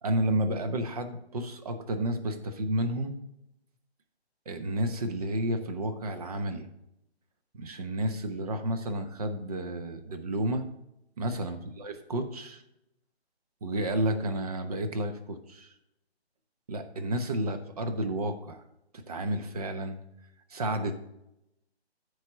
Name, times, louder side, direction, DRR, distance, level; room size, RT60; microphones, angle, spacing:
voice 1, 0.0-3.1 4.5-6.7 7.5-10.7 11.2-12.6 13.6-15.7 16.7-18.6 19.1-20.0 20.5-21.0, right 1 dB, 35° right, 7 dB, 1.0 m, -31 dB
13.5 x 4.9 x 4.0 m, 0.84 s
figure-of-eight pair, 150°, 33 cm